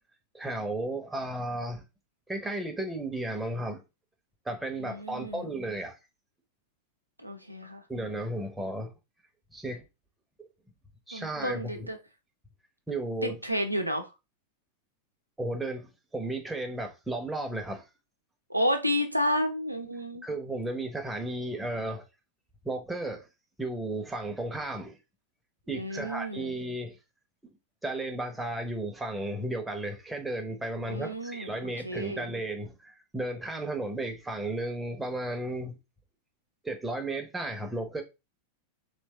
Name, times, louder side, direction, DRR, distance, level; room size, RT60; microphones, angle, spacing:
voice 1, 0.3-1.8 2.3-3.8 4.4-6.0 7.9-8.9 9.5-9.8 11.1-11.9 12.9-13.4 15.4-17.8 20.2-22.0 22.6-23.3 23.6-25.0 25.7-27.0 27.8-35.8 36.6-38.0, right 1 dB, 5° right, 0.9 m, -34 dB
voice 2, 4.8-5.5 7.2-7.8 11.1-12.0 13.2-14.1 18.5-20.3 25.7-26.5 30.9-32.2, equal, 90° right, 0.7 m, -31 dB
3.3 x 3.1 x 3.2 m
figure-of-eight pair, 90°, 0 cm